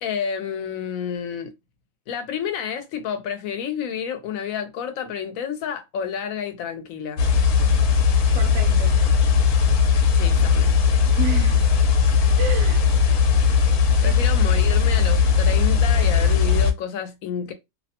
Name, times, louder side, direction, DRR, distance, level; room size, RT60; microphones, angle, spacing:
voice 1, 0.0-1.5 2.1-7.3 10.1-10.8 12.1-12.2 14.0-17.5, left 7 dB, 70° left, 1.0 m, -30 dB
sound 1, 7.2-16.7, left 6 dB, 90° left, 1.1 m, -18 dB
voice 2, 8.3-9.1 11.2-11.8 12.1-12.9 14.0-14.2, right 6 dB, 70° right, 0.9 m, -32 dB
2.6 x 2.1 x 2.8 m
omnidirectional pair, 1.6 m